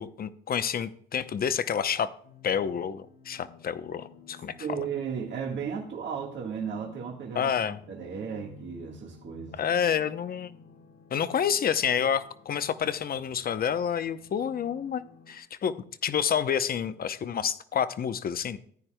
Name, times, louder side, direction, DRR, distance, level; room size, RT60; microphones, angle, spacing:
voice 1, 0.0-2.1 2.4-4.6 7.3-7.8 9.5-10.5 11.1-15.7 16.0-18.6, left 8 dB, 50° left, 13 dB, 0.7 m, -29 dB
sound 1, 2.2-15.4, left 6 dB, 80° left, 1.7 m, -54 dB
voice 2, 4.6-9.6, right 6 dB, 65° right, 0 dB, 1.6 m, -35 dB
14.5 x 9.6 x 2.2 m, 0.63 s
cardioid pair, 90°, 20 cm